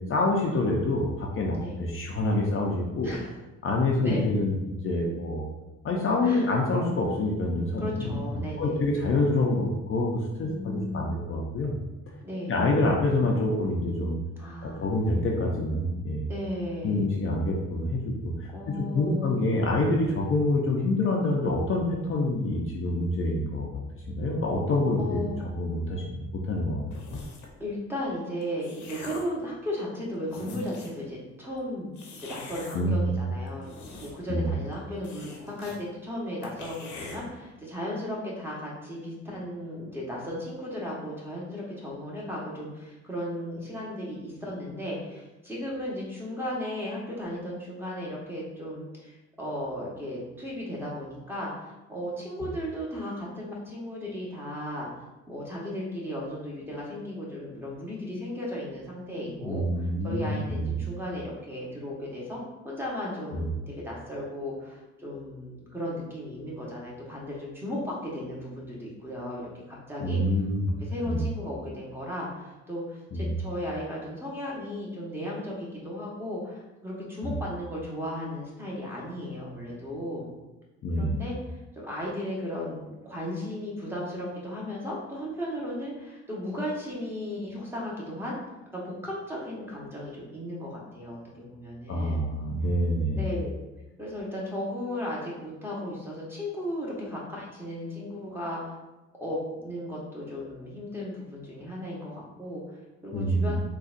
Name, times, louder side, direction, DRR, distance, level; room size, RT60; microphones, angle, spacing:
voice 1, 0.1-1.5 1.8-3.1 3.6-5.5 5.8-8.2 8.6-11.8 12.5-14.2 14.6-16.3 16.8-18.5 18.9-25.2 25.6-27.2 32.7-33.3 34.3-34.5 59.3-60.7 63.3-63.5 70.0-70.7 71.1-71.2 73.1-73.3 77.2-77.3 80.8-81.2 91.9-93.3 103.1-103.6, left 2 dB, 45° left, -1 dB, 0.5 m, -26 dB
voice 2, 1.5-1.8 3.0-3.3 4.0-4.3 6.2-6.5 7.8-8.8 10.4-11.2 12.2-12.7 14.4-14.9 16.3-17.1 18.5-19.6 25.0-25.4 27.6-31.9 32.2-54.9 55.3-62.4 62.6-70.2 70.8-80.3 80.9-88.3 88.7-92.2 93.1-93.5 94.0-98.7 99.2-103.6, left 1 dB, 10° right, -5 dB, 1.0 m, -35 dB
sound 1, 26.9-27.6 28.2-29.4 30.0-30.1 30.3-31.0 32.0-32.8 33.5-34.4 34.6-34.7 35.0-35.8 36.1-36.2 36.4-37.2, left 3 dB, 75° left, 0.8 m, -43 dB
3.8 x 2.3 x 2.4 m, 1.0 s
cardioid pair, 90°, 30 cm